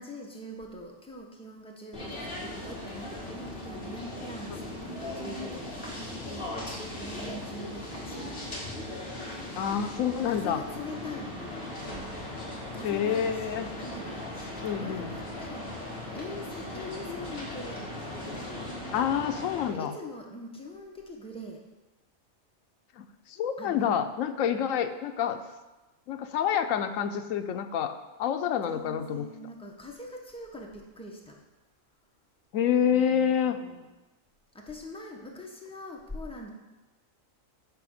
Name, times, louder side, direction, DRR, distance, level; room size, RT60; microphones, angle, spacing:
voice 1, 0.0-5.9 6.3-8.5 10.3-11.7 12.6-15.7 16.1-17.9 18.1-18.5 19.7-21.7 23.6-23.9 28.6-31.4 32.8-33.9 34.5-36.5, left 1 dB, 5° left, 0 dB, 0.9 m, -43 dB
sound 1, 1.9-19.7, left 1 dB, 45° left, 2.0 m, -38 dB
voice 2, 9.6-10.6 12.8-13.7 14.6-15.1 18.9-19.9 23.0-25.4 26.1-29.3 32.5-33.6, left 8 dB, 80° left, 8 dB, 1.0 m, -28 dB
9.8 x 3.4 x 6.4 m, 1.1 s
omnidirectional pair, 1.4 m